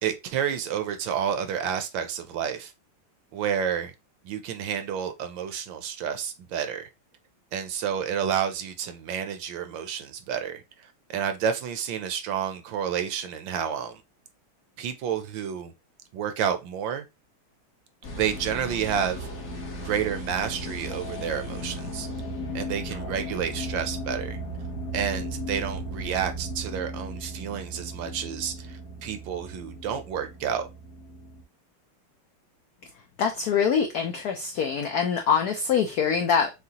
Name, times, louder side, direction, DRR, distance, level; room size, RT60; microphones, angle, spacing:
voice 1, 0.0-2.7 3.3-3.9 4.2-6.9 7.5-14.0 14.8-15.7 16.1-17.0 18.2-19.3 19.8-22.1 22.5-24.4 24.9-30.7, right 8 dB, 75° right, 1.2 m, -30 dB
sound 1, 18.0-31.4, equal, 45° left, 1.4 m, -36 dB
voice 2, 33.2-36.5, left 7 dB, 85° left, 0.8 m, -24 dB
6.4 x 2.3 x 2.8 m
omnidirectional pair, 2.3 m